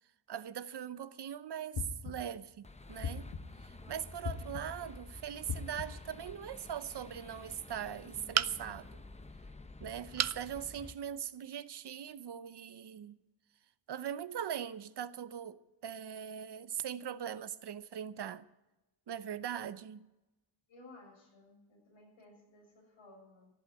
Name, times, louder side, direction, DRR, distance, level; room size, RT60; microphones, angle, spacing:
voice 1, 0.3-3.3 3.6-9.0 9.8-13.2 13.9-18.5 19.1-20.1, right 9 dB, 60° right, 0.8 m, -41 dB
sound 1, 1.7-2.4 3.0-3.7 4.2-4.9 5.5-6.1, left 5 dB, 60° left, 1.4 m, -40 dB
sound 2, 2.6-10.9, left 2 dB, 15° left, 0.8 m, -51 dB
voice 2, 3.8-4.8 20.7-23.5, left 2 dB, 80° left, 6.7 m, -58 dB
sound 3, 8.3-8.9 10.2-10.4 11.0-11.1 11.4-11.5, right 9 dB, 35° right, 0.5 m, -32 dB
14.5 x 8.1 x 9.7 m
cardioid pair, 80°, 46 cm